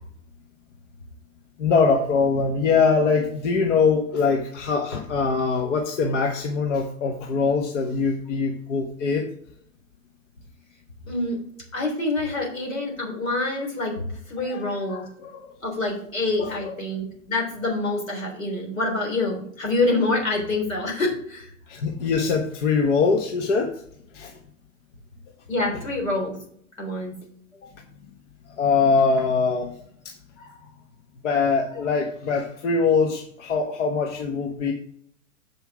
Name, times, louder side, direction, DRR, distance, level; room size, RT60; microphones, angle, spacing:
voice 1, 1.6-9.3 14.4-15.5 16.4-16.7 21.7-23.8 24.1-24.3 28.6-29.8 30.0-30.1 31.2-34.7, left 5 dB, 65° left, 3 dB, 1.2 m, -23 dB
voice 2, 11.1-11.4 11.7-15.1 15.6-21.5 25.5-26.4 26.8-27.1 30.4-30.6, left 2 dB, 85° left, 0 dB, 3.7 m, -26 dB
7.3 x 5.7 x 4.9 m, 0.65 s
hypercardioid pair, 110°, 39 cm